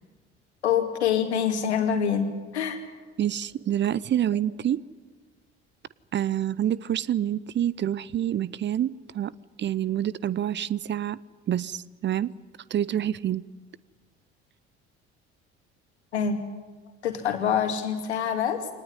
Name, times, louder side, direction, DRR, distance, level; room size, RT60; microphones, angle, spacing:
voice 1, 0.6-2.8 3.8-4.0 4.3-4.4 16.1-16.4 17.0-18.7, left 8 dB, 80° left, 2.3 m, -26 dB
voice 2, 3.2-4.8 6.1-9.3 9.6-11.2 11.5-12.3 12.7-13.4, right 11 dB, 35° right, 0.7 m, -27 dB
24.0 x 19.0 x 9.9 m
figure-of-eight pair, 55°, 33 cm